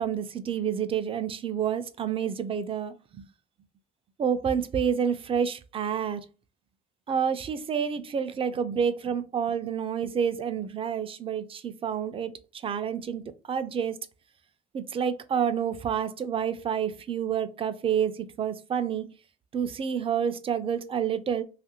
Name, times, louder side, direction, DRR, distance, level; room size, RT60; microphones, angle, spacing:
voice 1, 0.0-3.2 4.2-6.3 7.1-12.3 12.6-13.2 13.5-14.0 14.7-19.1 19.5-21.4, right 7 dB, 35° right, 0.4 m, -28 dB
2.9 x 2.4 x 2.8 m
cardioid pair, 110°, 17 cm